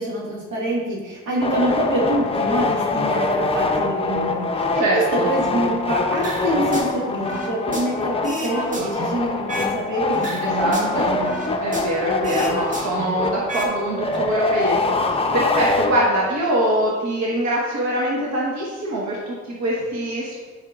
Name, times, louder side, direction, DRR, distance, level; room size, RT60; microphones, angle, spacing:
voice 1, 0.0-11.3, right 1 dB, 85° right, -3 dB, 1.8 m, -25 dB
sound 1, 1.4-16.4, left 3 dB, 20° left, 0.6 m, -24 dB
voice 2, 4.8-5.3 10.4-11.1 11.6-20.5, right 1 dB, 65° right, -4 dB, 1.3 m, -23 dB
sound 2, 6.2-6.9 7.2-9.8 10.1-12.0 12.2-13.7 14.0-14.2, right 1 dB, 25° right, 1.2 m, -31 dB
8.3 x 5.5 x 2.5 m, 1.4 s
cardioid pair, 90°, 30 cm